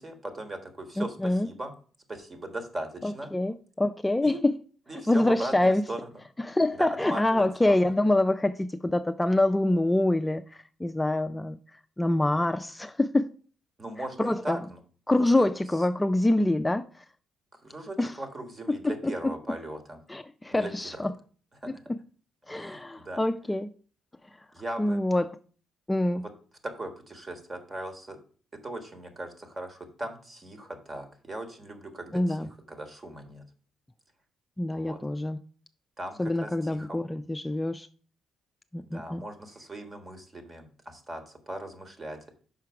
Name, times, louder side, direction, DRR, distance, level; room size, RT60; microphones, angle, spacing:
voice 1, 0.0-1.7 2.1-3.3 4.2-4.4 4.9-6.1 6.8-7.8 13.8-14.8 17.6-20.0 20.5-21.0 21.6-21.7 22.5-23.2 24.5-25.0 26.2-26.3 26.6-28.2 28.6-33.4 34.7-35.0 36.0-37.0 38.8-42.3, right 1 dB, 30° right, 1.5 m, -39 dB
voice 2, 1.0-1.5 3.0-4.4 5.1-5.8 6.4-11.6 12.0-13.3 14.0-14.6 15.1-17.0 18.0-18.2 18.8-19.1 20.1-21.1 21.7-21.8 22.5-23.7 24.8-25.4 25.9-26.2 32.1-32.5 34.6-35.4 36.2-37.9 38.7-39.2, left 1 dB, 10° left, 0.3 m, -26 dB
5.8 x 4.6 x 4.7 m
cardioid pair, 90°, 0 cm